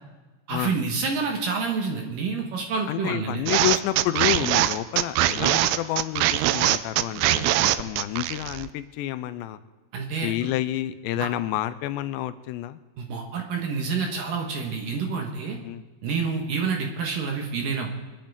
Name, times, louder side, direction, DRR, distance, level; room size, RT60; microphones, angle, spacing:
voice 1, 0.5-3.4 9.9-10.3 11.2-11.3 13.0-15.6 16.0-18.0, right 5 dB, 65° right, 1 dB, 2.6 m, -28 dB
voice 2, 2.9-9.6 10.2-12.8 15.6-15.8, left 14 dB, 85° left, 12 dB, 2.8 m, -29 dB
sound 1, 3.5-8.7, right 14 dB, 85° right, 2.2 m, -22 dB
25.5 x 10.5 x 3.5 m, 1.2 s
omnidirectional pair, 5.0 m